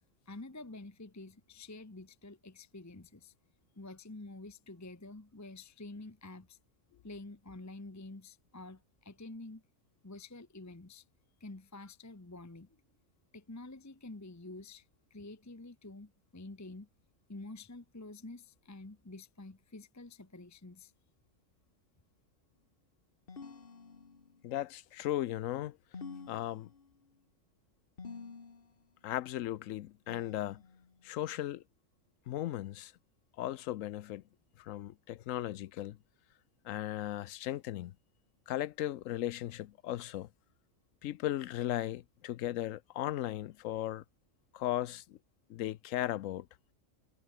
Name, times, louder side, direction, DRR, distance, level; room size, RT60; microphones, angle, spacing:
voice 1, 0.3-3.3 3.8-6.6 7.0-9.6 10.0-11.0 11.4-12.8 13.3-16.9 17.3-20.9, left 2 dB, 15° left, 0.9 m, -48 dB
sound 1, 23.3-24.5 25.9-27.1 28.0-28.9 30.1-31.0, left 5 dB, 45° left, 1.7 m, -49 dB
voice 2, 24.4-25.8 26.3-26.7 29.0-30.6 31.0-31.6 32.3-32.9 33.4-34.2 34.6-36.0 36.6-37.9 38.5-40.3 41.0-44.0 44.5-45.2 45.5-46.5, left 13 dB, 90° left, 1.0 m, -36 dB
omnidirectional pair, 1.3 m